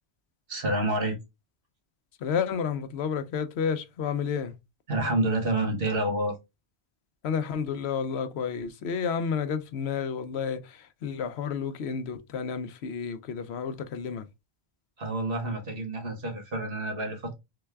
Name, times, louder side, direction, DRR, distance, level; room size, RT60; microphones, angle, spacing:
voice 1, 0.5-1.2 4.9-6.4 15.0-17.3, right 2 dB, 60° right, 1.4 m, -28 dB
voice 2, 2.2-4.5 7.2-14.3, left 6 dB, 85° left, 0.9 m, -31 dB
3.9 x 3.4 x 3.3 m
omnidirectional pair, 1.1 m